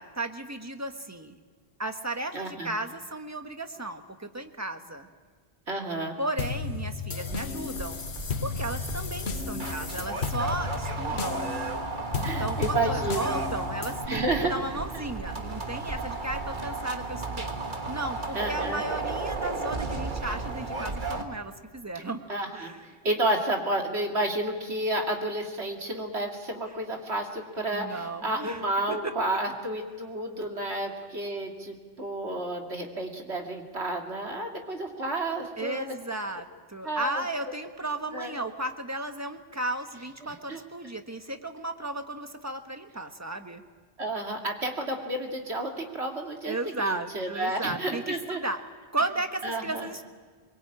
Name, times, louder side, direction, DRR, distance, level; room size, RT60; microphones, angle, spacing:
voice 1, 0.0-1.4 1.8-5.1 6.2-8.0 8.4-11.5 12.1-17.5 17.9-22.3 22.5-22.8 27.7-28.6 28.9-29.1 35.6-43.6 46.4-48.6 48.9-50.0, right 2 dB, 15° right, 6 dB, 1.4 m, -34 dB
voice 2, 2.3-2.7 5.7-6.2 11.2-11.3 12.2-13.3 14.1-14.5 18.3-18.8 22.3-35.9 36.8-37.2 38.1-38.3 40.2-40.6 44.0-48.4 49.4-49.9, right 1 dB, 90° right, 2 dB, 2.8 m, -31 dB
sound 1, 6.4-14.1, left 5 dB, 80° left, 1.4 m, -34 dB
sound 2, 7.3-21.2, right 3 dB, 50° right, 1.8 m, -34 dB
23.5 x 23.0 x 8.8 m, 1.5 s
omnidirectional pair, 1.1 m